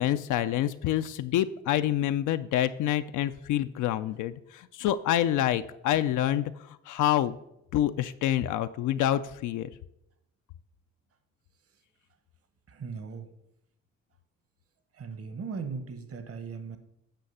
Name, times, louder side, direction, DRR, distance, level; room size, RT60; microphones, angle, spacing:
voice 1, 0.0-7.4 7.7-9.7, left 12 dB, 80° left, 10 dB, 0.5 m, -27 dB
voice 2, 12.7-13.3 14.9-16.8, right 5 dB, 50° right, 9 dB, 1.2 m, -38 dB
9.1 x 5.7 x 5.5 m, 0.81 s
cardioid pair, 90°, 30 cm